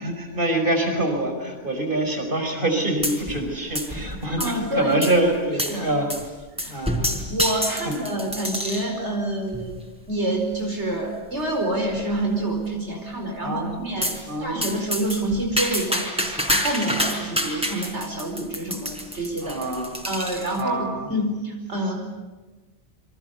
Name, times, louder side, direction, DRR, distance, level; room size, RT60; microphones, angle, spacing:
voice 1, 0.0-6.1 6.7-7.0 7.6-8.0 13.4-13.8 14.3-14.6 19.4-20.0 20.6-21.1, right 1 dB, 50° right, 5 dB, 5.3 m, -25 dB
sound 1, 3.0-3.5 3.7-4.6 5.0-5.2 5.6-5.8 6.1-6.3 6.6-8.9 9.5-9.9 10.5-10.6 10.9-11.0 11.4-11.5 11.9-12.4 14.0-14.2 14.6-20.6, equal, 5° right, 4.5 m, -28 dB
voice 2, 4.4-5.3 5.7-5.9 6.6-6.8 7.3-9.8 10.1-19.6 20.1-21.9, right 1 dB, 75° right, 2 dB, 5.1 m, -27 dB
30.0 x 24.5 x 8.2 m, 1.2 s
omnidirectional pair, 1.2 m